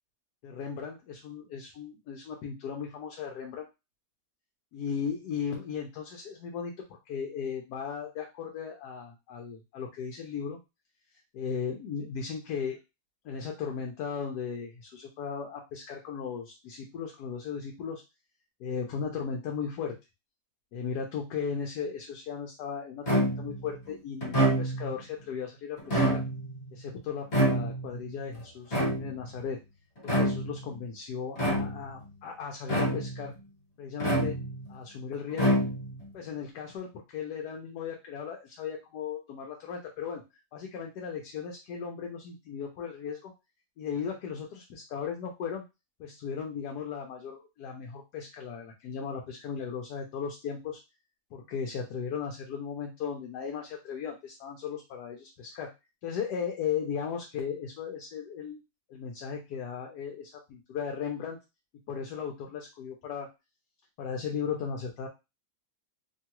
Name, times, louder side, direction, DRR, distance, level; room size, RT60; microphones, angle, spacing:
voice 1, 0.4-3.7 4.7-6.7 7.1-10.6 11.3-12.8 13.2-18.0 18.6-19.9 20.7-26.3 26.7-29.6 30.0-33.3 33.8-34.4 34.7-35.6 36.1-40.2 40.5-43.3 43.8-45.6 46.0-50.8 51.3-55.7 56.0-58.6 58.9-61.4 61.9-63.3 64.0-65.1, left 6 dB, 80° left, 1 dB, 1.2 m, -36 dB
sound 1, 23.1-23.6 24.2-25.0 25.8-26.6 27.3-28.0 28.7-29.3 30.0-30.6 31.4-32.0 32.7-33.3 34.0-34.7 35.3-36.0, right 1 dB, 45° left, 1.6 m, -27 dB
3.0 x 2.3 x 2.9 m, 0.25 s
omnidirectional pair, 1.7 m